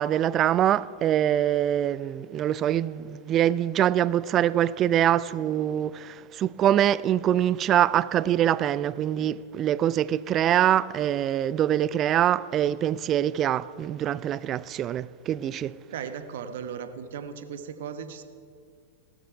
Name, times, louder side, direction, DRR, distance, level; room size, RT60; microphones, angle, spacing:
voice 1, 0.0-15.8, right 11 dB, 35° right, 0.4 m, -24 dB
voice 2, 15.9-18.2, right 7 dB, 60° right, 1.1 m, -36 dB
15.5 x 13.5 x 5.8 m
figure-of-eight pair, 95°, 0 cm